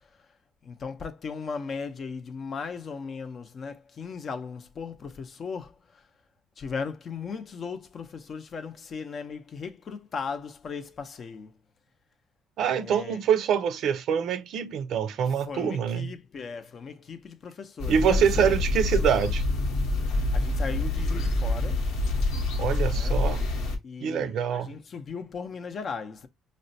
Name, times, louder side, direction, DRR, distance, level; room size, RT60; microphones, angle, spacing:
voice 1, 0.6-5.7 6.6-11.5 12.8-13.2 15.5-18.6 20.3-21.8 22.9-23.2 23.8-26.3, left 5 dB, 45° left, 0.6 m, -37 dB
voice 2, 12.6-16.1 17.9-19.4 22.6-23.4 24.0-24.7, right 8 dB, 65° right, 0.5 m, -25 dB
sound 1, 17.8-23.8, left 2 dB, 80° left, 0.9 m, -26 dB
4.9 x 2.1 x 2.6 m
cardioid pair, 95°, 0 cm